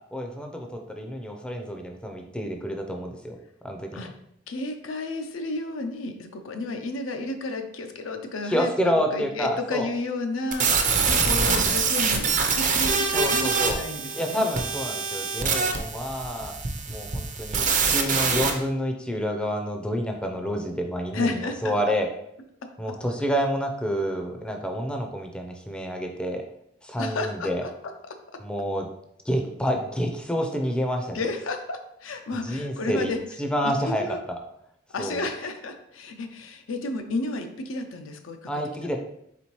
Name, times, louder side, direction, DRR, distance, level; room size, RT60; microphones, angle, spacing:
voice 1, 0.1-3.4 3.6-4.1 8.4-9.9 13.1-13.8 14.1-16.5 16.9-22.1 22.8-26.4 26.8-27.6 28.4-28.9 29.3-31.2 32.4-33.1 33.4-34.4 35.0-35.3 38.5-39.0, equal, 5° left, 3 dB, 0.4 m, -28 dB
voice 2, 4.5-14.5 21.1-21.7 27.0-27.7 28.1-28.2 31.1-33.2 33.6-34.2 34.9-38.5 38.8-39.0, left 2 dB, 90° left, 6 dB, 0.5 m, -32 dB
sound 1, 10.5-18.5, right 5 dB, 40° right, 0.5 m, -24 dB
4.2 x 3.6 x 3.0 m, 0.75 s
head